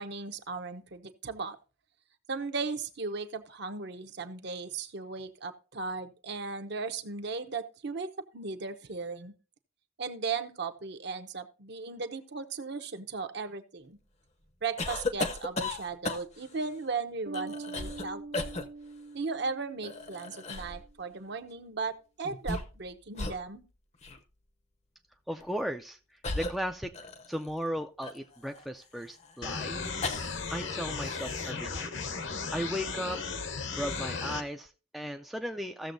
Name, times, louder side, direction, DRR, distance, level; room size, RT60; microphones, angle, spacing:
voice 1, 0.0-1.6 2.3-8.1 8.3-9.3 10.0-14.0 14.6-18.5 19.1-23.6, right 4 dB, 55° right, 8 dB, 0.8 m, -36 dB
sound 1, 14.8-16.5 17.3-18.1 18.3-18.6 19.8-20.8 22.2-22.9 23.1-23.4 24.0-24.2 25.3-25.5 26.2-27.5 28.0-30.5 30.8-31.5, left 2 dB, 30° left, 0.7 m, -36 dB
Bass guitar, 17.2-20.8, right 3 dB, 90° right, 1.2 m, -44 dB
voice 2, 25.3-26.0 26.3-26.9 27.3-29.8 30.5-31.9 32.5-33.2 33.8-35.9, equal, ahead, 4 dB, 0.4 m, -36 dB
sound 2, 29.4-34.4, left 4 dB, 60° left, 0.9 m, -35 dB
16.0 x 6.9 x 2.6 m, 0.34 s
head